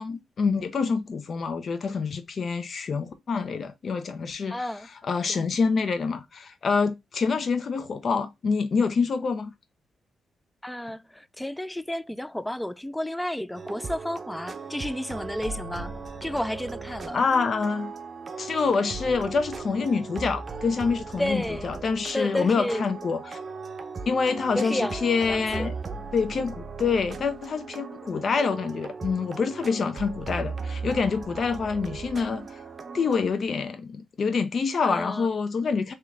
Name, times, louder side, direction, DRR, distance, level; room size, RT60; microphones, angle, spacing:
voice 1, 0.0-4.7 5.0-9.5 17.1-17.9 18.4-23.4 24.1-25.7 26.1-32.5 32.9-35.9, left 5 dB, 55° left, 0.7 m, -26 dB
voice 2, 4.5-4.9 5.3-5.4 10.6-15.9 16.2-17.2 21.2-21.7 22.1-22.8 24.6-25.0 25.3-25.7 34.8-35.3, left 1 dB, 10° left, 0.3 m, -31 dB
sound 1, 13.6-33.3, right 4 dB, 45° right, 0.7 m, -37 dB
3.6 x 3.1 x 3.3 m
cardioid pair, 70°, 0 cm